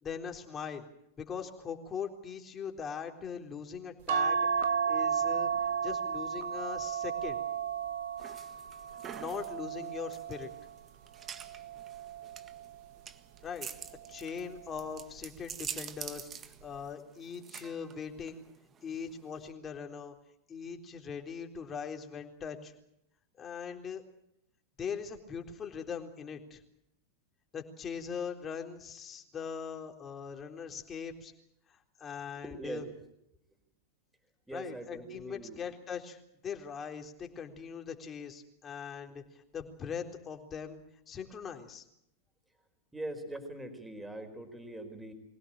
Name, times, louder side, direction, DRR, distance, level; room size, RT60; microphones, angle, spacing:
voice 1, 0.0-0.8 1.2-5.5 5.8-7.4 9.2-10.5 13.4-13.7 14.1-18.4 18.8-20.1 20.5-22.7 23.4-24.0 24.8-26.6 27.5-31.3 31.7-32.9 34.5-40.8 41.1-41.8, left 6 dB, 25° left, 4 dB, 3.8 m, -41 dB
sound 1, 4.1-10.7 11.3-12.7 14.0-14.4 14.7-14.8, right 7 dB, 65° right, 1.3 m, -33 dB
sound 2, 8.2-19.5, right 8 dB, 30° right, 1.7 m, -46 dB
voice 2, 32.4-32.8 34.5-35.6 42.9-45.1, right 1 dB, 5° right, 6 dB, 4.7 m, -42 dB
24.5 x 17.0 x 8.9 m, 0.78 s
hypercardioid pair, 110°, 0 cm